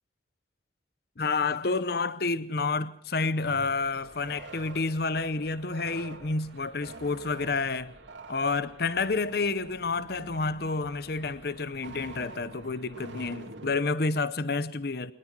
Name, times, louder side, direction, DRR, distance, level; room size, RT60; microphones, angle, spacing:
voice 1, 1.2-7.9 8.3-15.1, left 3 dB, 55° left, 0.8 m, -29 dB
sound 1, 3.4-13.7, right 2 dB, 80° right, 2.8 m, -47 dB
23.5 x 19.5 x 6.1 m
head